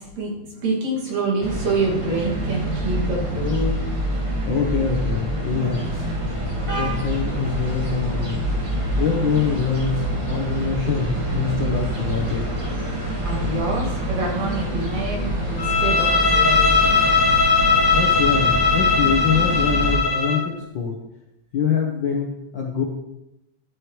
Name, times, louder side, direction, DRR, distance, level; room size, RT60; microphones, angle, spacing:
voice 1, 0.0-3.7 13.2-16.9, right 2 dB, 65° right, -3 dB, 3.5 m, -26 dB
sound 1, 1.4-20.0, right 1 dB, 40° right, 0.4 m, -26 dB
voice 2, 4.4-6.1 6.7-8.4 9.0-12.4 17.9-21.0 21.5-22.8, left 6 dB, 70° left, 0 dB, 1.1 m, -24 dB
Bowed string instrument, 15.6-20.5, left 4 dB, 90° left, 0.7 m, -19 dB
12.0 x 7.9 x 3.2 m, 0.88 s
omnidirectional pair, 3.4 m